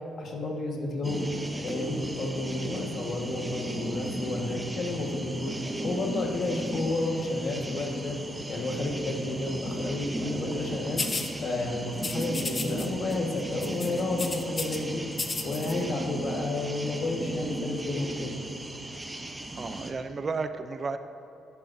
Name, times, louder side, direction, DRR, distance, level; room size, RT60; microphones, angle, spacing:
voice 1, 0.2-1.3 1.6-5.6 5.8-8.2 8.5-11.0 11.4-15.0 15.4-18.3, left 2 dB, 55° left, 0 dB, 1.5 m, -31 dB
sound 1, 1.0-19.9, right 1 dB, 15° right, 0.9 m, -36 dB
sound 2, 11.0-11.3 12.0-12.9 13.1-13.3 13.6-14.8 15.1-15.7, left 4 dB, 35° left, 0.8 m, -33 dB
voice 2, 19.6-21.0, right 4 dB, 40° right, 9 dB, 0.4 m, -33 dB
12.0 x 10.5 x 2.7 m, 2.6 s
cardioid pair, 90°, 0 cm